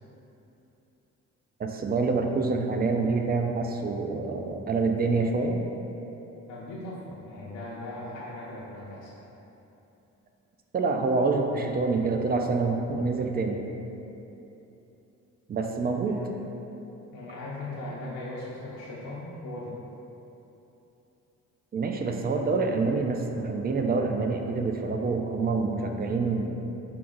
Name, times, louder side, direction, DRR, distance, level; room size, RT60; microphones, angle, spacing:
voice 1, 1.6-5.6 10.7-13.6 15.5-16.2 21.7-26.6, right 4 dB, 30° right, 3 dB, 0.4 m, -26 dB
voice 2, 6.5-9.1 15.8-16.3 17.1-19.8, left 2 dB, 75° left, -6 dB, 0.7 m, -39 dB
4.4 x 2.6 x 3.7 m, 3.0 s
cardioid pair, 90°, 30 cm